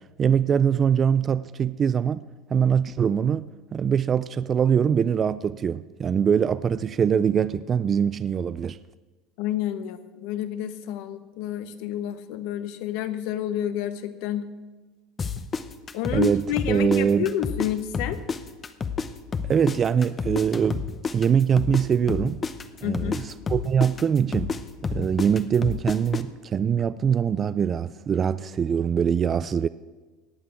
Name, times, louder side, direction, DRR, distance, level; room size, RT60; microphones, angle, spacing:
voice 1, 0.2-2.2 2.5-8.8 16.1-17.3 19.4-22.4 22.8-24.6 24.9-29.7, right 7 dB, 35° right, 0.4 m, -23 dB
voice 2, 9.4-14.5 15.9-18.2 22.8-23.2, left 11 dB, 70° left, 1.2 m, -29 dB
sound 1, 15.2-17.7 17.9-21.8 22.1-26.2, left 5 dB, 30° left, 0.8 m, -30 dB
17.5 x 6.1 x 8.5 m
supercardioid pair, 100°, 0 cm